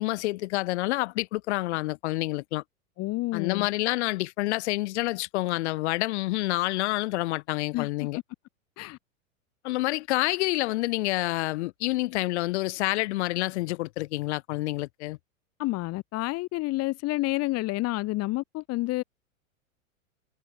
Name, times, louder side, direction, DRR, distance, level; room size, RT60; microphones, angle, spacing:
voice 1, 0.0-2.6 3.3-8.2 9.6-15.2, left 19 dB, 55° left, 4.8 m, -28 dB
voice 2, 3.0-3.7 7.7-8.2 8.8-9.0 15.6-19.0, left 20 dB, 35° left, 2.7 m, -29 dB
hypercardioid pair, 105°, 41 cm